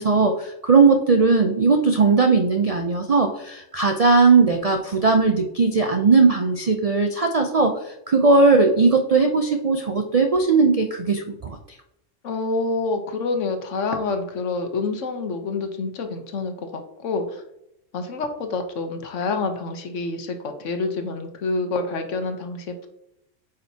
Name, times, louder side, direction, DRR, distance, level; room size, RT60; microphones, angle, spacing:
voice 1, 0.0-11.6, right 4 dB, 55° right, 5 dB, 0.4 m, -18 dB
voice 2, 12.2-17.4 17.9-22.9, left 3 dB, 70° left, 6 dB, 1.2 m, -27 dB
8.7 x 5.0 x 2.8 m, 0.81 s
omnidirectional pair, 1.3 m